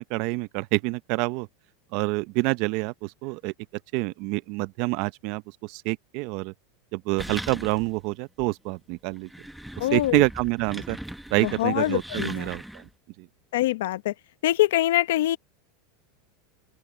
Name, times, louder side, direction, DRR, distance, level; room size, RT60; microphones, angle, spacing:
voice 1, 0.0-1.5 1.9-3.5 3.9-6.5 6.9-9.3 9.8-11.0 11.3-12.9 13.2-13.3, right 23 dB, 60° right, 0.8 m, -27 dB
sound 1, 7.2-8.0 8.4-8.5 9.1-12.9, right 1 dB, ahead, 1.1 m, -39 dB
voice 2, 9.8-10.2 11.4-12.5 13.5-14.1 14.4-15.4, left 15 dB, 80° left, 1.0 m, -24 dB
open air
supercardioid pair, 120°, 0 cm